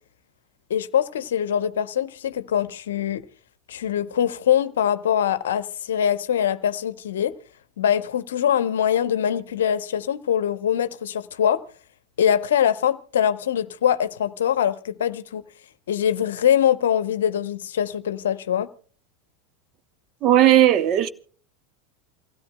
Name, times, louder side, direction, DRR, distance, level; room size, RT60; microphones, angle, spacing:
voice 1, 0.7-3.2 3.7-7.4 7.8-11.6 12.2-15.4 15.9-18.7, left 9 dB, 70° left, 0.7 m, -23 dB
voice 2, 20.2-21.1, right 12 dB, 45° right, 1.0 m, -16 dB
28.5 x 16.5 x 2.2 m
figure-of-eight pair, 80°, 0 cm